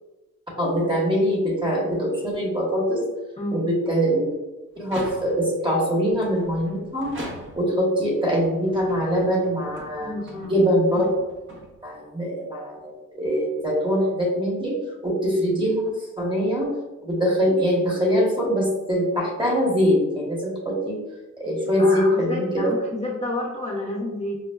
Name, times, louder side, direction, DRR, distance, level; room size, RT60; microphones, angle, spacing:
voice 1, 0.6-3.0 3.5-4.3 4.8-7.1 7.6-10.1 10.4-11.1 11.8-14.8 15.0-16.7 17.0-21.0 21.4-22.7, equal, 15° right, -3 dB, 1.1 m, -23 dB
voice 2, 3.4-3.7 10.0-10.5 21.8-24.4, left 1 dB, 20° left, -4 dB, 0.7 m, -30 dB
sound 1, 4.8-5.6 6.2-7.9 8.5-12.1, right 1 dB, 40° right, 0.9 m, -41 dB
5.3 x 2.0 x 2.2 m, 1.1 s
cardioid pair, 90°, 30 cm